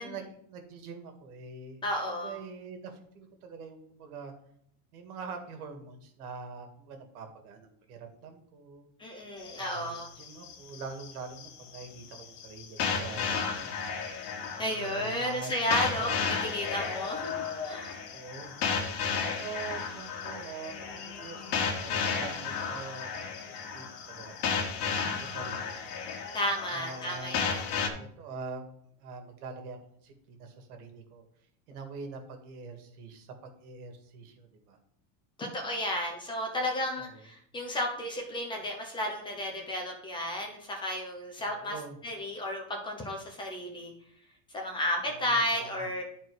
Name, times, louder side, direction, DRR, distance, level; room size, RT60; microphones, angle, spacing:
voice 1, 0.0-4.3 4.9-8.9 9.6-13.8 14.6-15.5 15.9-16.4 18.1-18.5 19.2-24.4 24.8-25.7 26.7-27.4 28.0-28.7 29.0-29.8 30.0-31.2 31.7-34.8 37.0-37.2 41.5-42.0 45.1-45.9, right 5 dB, 75° right, 5 dB, 2.0 m, -44 dB
voice 2, 1.8-2.4 9.0-10.1 14.6-18.0 26.3-27.7 35.4-43.9 44.5-46.0, left 1 dB, 10° left, 1 dB, 0.8 m, -33 dB
sound 1, 9.4-27.9, left 7 dB, 50° left, 1.3 m, -46 dB
sound 2, 12.8-27.9, left 6 dB, 85° left, 1.7 m, -33 dB
10.5 x 4.3 x 4.7 m, 0.68 s
supercardioid pair, 180°, 45 cm